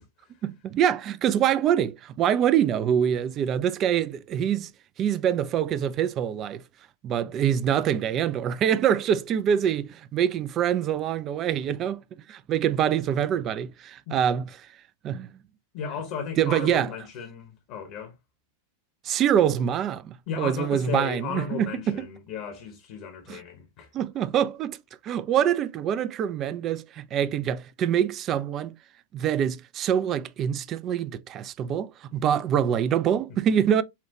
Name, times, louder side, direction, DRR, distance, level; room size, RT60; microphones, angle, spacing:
voice 1, 0.4-4.7 5.0-6.6 7.0-12.0 12.3-14.5 15.0-15.3 16.4-16.9 19.0-22.0 23.3-23.4 23.9-24.8 25.0-28.7 29.1-33.8, right 9 dB, 30° right, 0.4 m, -25 dB
voice 2, 15.7-18.1 20.3-23.9, left 6 dB, 45° left, 1.0 m, -35 dB
5.7 x 2.3 x 2.9 m
figure-of-eight pair, 90°, 0 cm